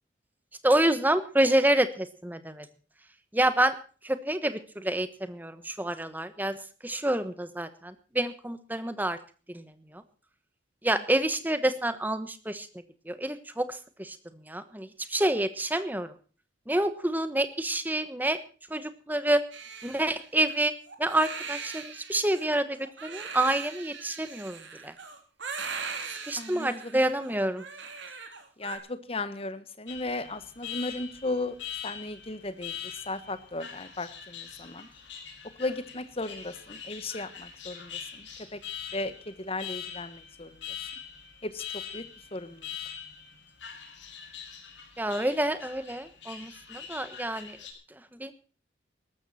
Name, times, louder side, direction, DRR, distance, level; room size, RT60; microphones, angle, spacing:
voice 1, 0.6-2.7 3.3-3.7 4.0-6.6 6.8-9.2 9.5-10.0 10.8-12.7 13.1-14.2 14.5-16.1 16.7-18.4 18.7-19.4 19.8-20.7 21.0-24.9 26.3-27.6 45.0-47.6 48.2-48.3, right 1 dB, 10° right, 11 dB, 1.2 m, -28 dB
Crying sobbing, 19.5-28.8, right 5 dB, 75° right, 3.4 m, -40 dB
voice 2, 26.4-27.0 28.6-31.5 31.8-34.9 35.6-38.6 38.9-40.7 41.4-41.6 41.9-42.0 42.3-42.7, left 2 dB, 30° left, 12 dB, 1.4 m, -36 dB
Alarm, 29.9-47.7, left 8 dB, 75° left, 5.7 m, -43 dB
18.0 x 13.5 x 4.3 m, 0.38 s
head